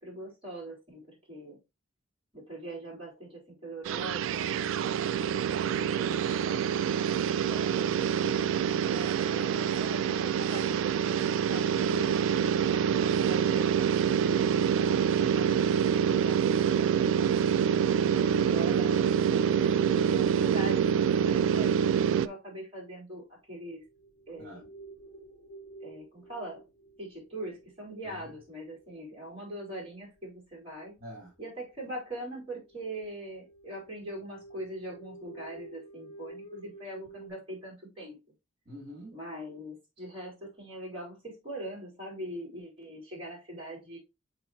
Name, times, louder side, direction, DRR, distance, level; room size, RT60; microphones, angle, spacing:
voice 1, 0.0-1.6 2.3-4.7 5.3-8.4 8.8-12.3 13.0-15.6 15.9-17.4 18.1-21.8 22.0-23.8 24.3-24.7 25.8-26.6 27.0-30.9 31.4-38.2 39.1-44.0, right 1 dB, 25° right, -4 dB, 4.1 m, -42 dB
sound 1, 3.9-22.3, right 8 dB, 65° right, 0.3 m, -26 dB
voice 2, 17.5-17.8 24.4-24.6 28.0-28.3 31.0-31.3 38.6-39.2, equal, 45° right, -4 dB, 3.0 m, -47 dB
sound 2, 23.7-29.3 30.2-30.3 30.6-30.8 31.4-31.5 31.6-31.9 32.1-37.3, right 2 dB, 30° left, 3.6 m, -51 dB
6.7 x 4.9 x 3.0 m, 0.25 s
head